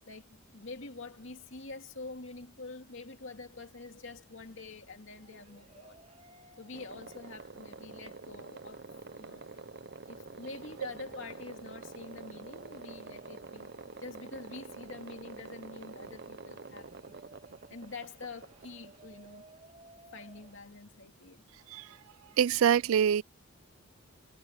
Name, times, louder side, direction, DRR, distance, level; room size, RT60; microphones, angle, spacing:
voice 1, 0.0-6.0 6.6-8.8 9.2-9.4 10.1-13.7 14.0-17.2 17.7-19.4 20.1-21.5, left 3 dB, 65° left, 2.6 m, -46 dB
sound 1, 5.1-7.8 8.2-8.3 8.9-20.6, right 3 dB, 30° right, 2.5 m, -60 dB
sound 2, 6.7-19.4, right 3 dB, 50° right, 0.8 m, -47 dB
voice 2, 22.4-23.2, right 8 dB, 80° right, 0.4 m, -25 dB
head